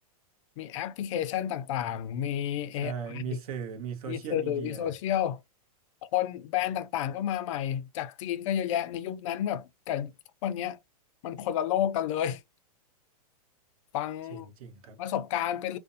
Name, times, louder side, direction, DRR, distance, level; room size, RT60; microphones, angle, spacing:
voice 1, 0.6-3.2 4.1-5.4 6.1-10.1 10.4-10.8 11.2-12.4 13.9-14.5 15.0-15.8, left 10 dB, 50° left, 0.4 m, -31 dB
voice 2, 2.8-4.9 14.3-15.0, right 8 dB, 65° right, 0.9 m, -38 dB
2.5 x 2.1 x 2.5 m
hypercardioid pair, 140°, 20 cm